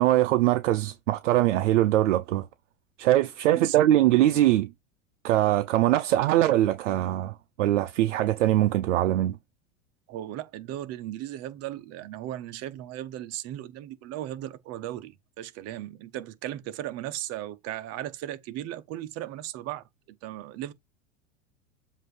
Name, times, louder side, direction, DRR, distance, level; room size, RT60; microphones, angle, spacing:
voice 1, 0.0-2.5 3.0-4.7 5.2-9.4, right 14 dB, 75° right, 0.6 m, -22 dB
voice 2, 10.1-19.8 20.2-20.7, right 13 dB, 45° right, 0.9 m, -36 dB
7.6 x 2.8 x 4.7 m
hypercardioid pair, 105°, 37 cm